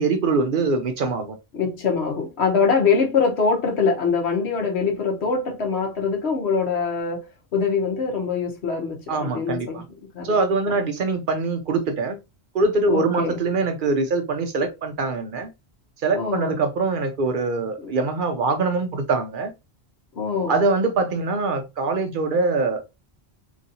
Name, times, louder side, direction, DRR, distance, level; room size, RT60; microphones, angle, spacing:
voice 1, 0.0-1.4 9.1-9.8 10.2-12.2 12.5-15.5 16.0-19.5 20.5-22.8, right 3 dB, 60° right, 0.7 m, -23 dB
voice 2, 1.5-7.3 7.5-9.8 10.1-10.3 12.9-13.4 16.1-16.6 17.8-17.9 20.1-20.6, left 5 dB, 85° left, 1.2 m, -23 dB
3.0 x 2.6 x 2.7 m
omnidirectional pair, 1.1 m